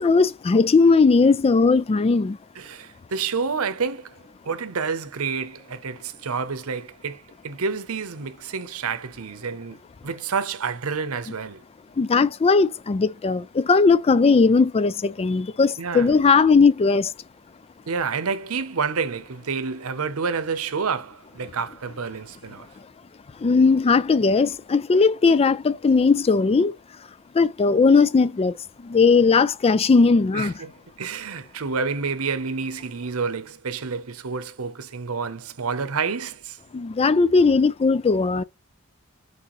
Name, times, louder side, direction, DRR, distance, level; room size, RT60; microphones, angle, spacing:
voice 1, 0.0-2.4 12.0-17.1 23.4-26.7 27.3-30.6 36.7-38.4, left 4 dB, 30° left, 0.3 m, -18 dB
voice 2, 2.6-4.1 4.4-9.8 10.0-11.6 15.8-16.1 17.9-22.7 30.3-30.7 31.0-36.6, right 5 dB, 90° right, 0.8 m, -29 dB
6.3 x 4.9 x 3.1 m
head